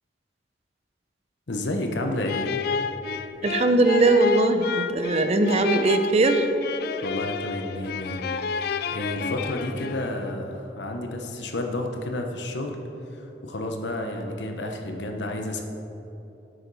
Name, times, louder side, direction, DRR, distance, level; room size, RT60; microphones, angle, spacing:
voice 1, 1.5-2.5 7.0-8.2 8.5-12.8 13.1-15.6, left 1 dB, 85° left, 3 dB, 1.0 m, -31 dB
sound 1, 2.3-10.3, left 6 dB, 60° left, 0.4 m, -31 dB
voice 2, 3.4-6.5, right 2 dB, 40° right, 7 dB, 0.6 m, -20 dB
10.0 x 7.9 x 4.1 m, 3.0 s
head